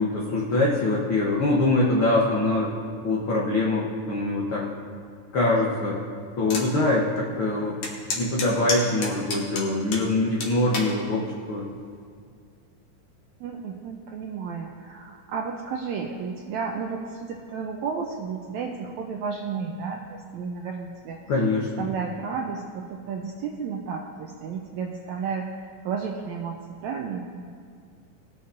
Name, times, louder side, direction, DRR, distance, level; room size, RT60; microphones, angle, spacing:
voice 1, 0.0-2.7 3.0-4.6 5.3-6.0 6.4-7.7 8.2-11.7 21.3-21.9, left 2 dB, 85° left, -4 dB, 1.1 m, -23 dB
sound 1, 6.5-6.7 7.2-7.3 7.8-10.1 10.4-10.9 11.6-11.9, left 3 dB, 60° left, 2.4 m, -29 dB
voice 2, 13.4-21.3 21.8-27.5, right 5 dB, 90° right, 1 dB, 1.6 m, -32 dB
20.5 x 6.9 x 2.6 m, 2.2 s
omnidirectional pair, 3.9 m